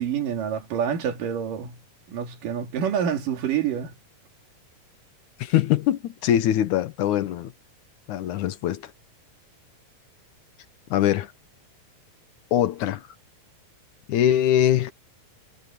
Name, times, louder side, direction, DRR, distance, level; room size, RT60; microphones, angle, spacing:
voice 1, 0.0-1.8 2.1-3.9, right 8 dB, 85° right, 3.9 m, -27 dB
voice 2, 5.4-7.5 8.1-8.9 10.9-11.3 12.5-13.0 14.1-14.9, left 11 dB, 75° left, 2.3 m, -22 dB
omnidirectional pair, 3.7 m